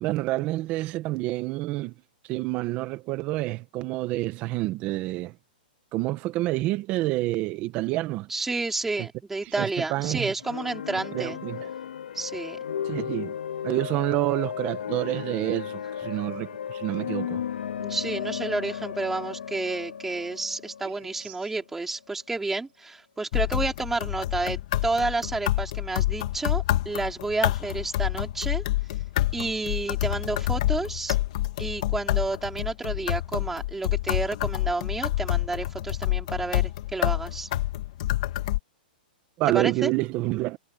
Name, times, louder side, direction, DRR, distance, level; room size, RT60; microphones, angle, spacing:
voice 1, 0.0-1.9 2.2-5.4 5.9-8.3 9.0-9.1 9.6-10.3 11.1-11.7 12.8-13.4 13.6-17.4 21.2-21.3 39.4-40.6, right 18 dB, 25° right, 1.1 m, -28 dB
voice 2, 8.3-11.4 12.1-12.6 17.8-28.6 29.3-31.2 31.6-37.5 39.5-39.9, right 3 dB, 5° right, 4.1 m, -30 dB
sound 1, 10.4-22.1, left 8 dB, 80° left, 2.2 m, -35 dB
sound 2, 23.3-38.6, left 15 dB, 45° left, 2.5 m, -28 dB
hypercardioid pair, 165°, 5 cm